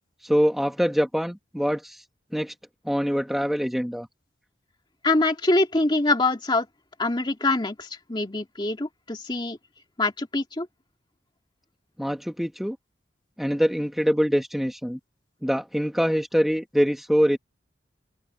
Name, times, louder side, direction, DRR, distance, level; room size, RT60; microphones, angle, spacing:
voice 1, 0.2-2.0 2.3-2.5 2.8-4.1 12.0-12.8 13.4-15.0 15.4-17.4, equal, ahead, 1.2 m, -24 dB
voice 2, 5.0-6.7 7.0-9.6 10.0-10.7, left 2 dB, 25° left, 2.2 m, -24 dB
open air
head